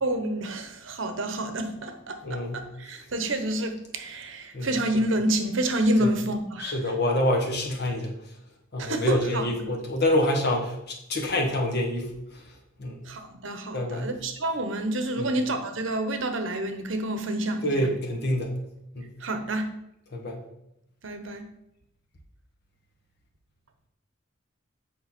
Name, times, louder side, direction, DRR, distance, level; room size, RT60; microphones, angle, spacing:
voice 1, 0.0-6.9 8.8-9.7 13.0-17.9 19.2-19.7 21.0-21.5, right 1 dB, 65° right, 7 dB, 1.0 m, -28 dB
voice 2, 2.2-2.6 4.5-4.7 6.0-6.1 6.6-8.1 8.7-12.1 12.8-13.0 13.7-14.1 17.6-18.5 18.9-19.1 20.1-20.4, left 1 dB, 55° left, 1 dB, 1.6 m, -26 dB
8.5 x 5.3 x 4.4 m, 0.81 s
head